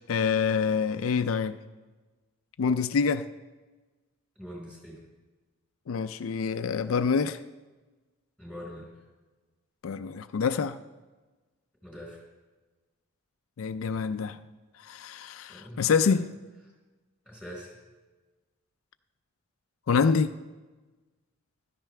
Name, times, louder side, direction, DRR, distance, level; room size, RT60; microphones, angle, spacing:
voice 1, 0.1-1.6 2.6-3.2 5.9-7.4 9.8-10.8 13.6-14.4 14.8-16.3 19.9-20.3, left 5 dB, 80° left, 10 dB, 0.4 m, -26 dB
voice 2, 4.4-5.0 8.4-8.9 11.8-12.2 15.5-15.8 17.3-17.7, equal, 5° right, -3 dB, 4.8 m, -42 dB
15.0 x 13.0 x 3.3 m, 1.2 s
head